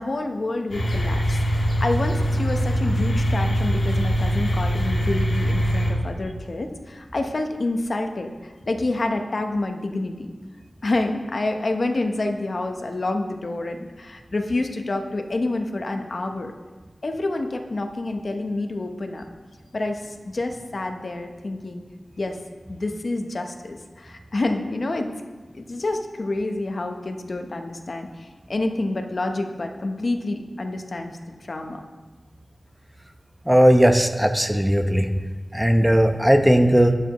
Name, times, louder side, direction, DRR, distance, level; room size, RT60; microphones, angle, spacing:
voice 1, 0.0-10.3 10.8-16.5 17.0-19.3 19.7-21.8 22.2-22.4 22.7-25.1 25.5-31.8, left 2 dB, 60° left, 5 dB, 1.0 m, -28 dB
sound 1, 0.7-5.9, equal, 85° left, 2.9 m, -22 dB
voice 2, 33.5-35.1 35.5-36.9, equal, 5° right, 6 dB, 0.9 m, -17 dB
12.0 x 11.5 x 3.1 m, 1.3 s
wide cardioid pair, 65°, 0 cm